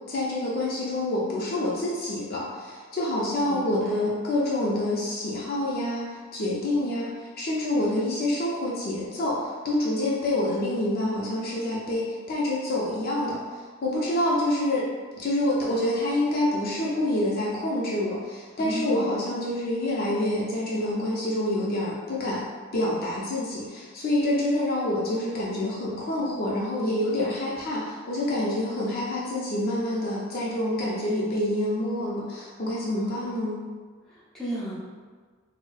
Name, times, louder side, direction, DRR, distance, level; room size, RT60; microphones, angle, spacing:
voice 1, 0.1-14.9 15.2-22.4 22.7-33.6, left 1 dB, 45° left, -5 dB, 0.5 m, -27 dB
voice 2, 3.4-4.0 18.6-19.0 32.9-33.2 34.1-34.7, equal, 5° left, -10 dB, 0.7 m, -35 dB
4.0 x 2.0 x 2.3 m, 1.5 s
head